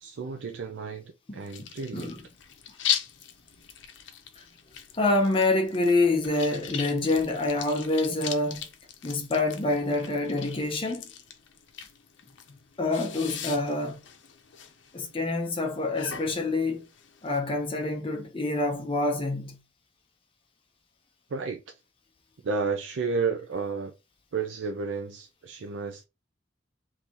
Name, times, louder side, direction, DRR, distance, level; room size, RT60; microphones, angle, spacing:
voice 1, 0.0-2.1 21.3-21.7 22.4-23.9 24.3-26.1, right 4 dB, 85° right, 0.4 m, -32 dB
sound 1, 1.4-17.4, left 9 dB, 75° left, 0.6 m, -39 dB
voice 2, 5.0-8.7 9.0-11.0 12.8-14.0 14.9-16.9 17.2-19.6, left 2 dB, 30° left, 0.6 m, -26 dB
3.7 x 2.7 x 2.8 m
head